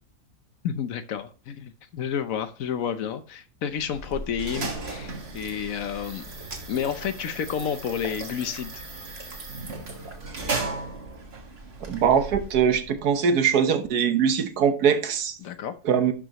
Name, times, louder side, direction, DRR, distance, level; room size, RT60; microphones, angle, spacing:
voice 1, 0.6-6.2 6.7-8.8 9.1-9.3 15.4-15.7, left 8 dB, 65° left, 1.1 m, -30 dB
sound 1, 3.7-13.1, right 3 dB, 45° right, 1.8 m, -36 dB
voice 2, 11.8-15.4 15.8-16.1, right 7 dB, 85° right, 1.5 m, -22 dB
11.5 x 6.2 x 3.0 m
omnidirectional pair, 1.6 m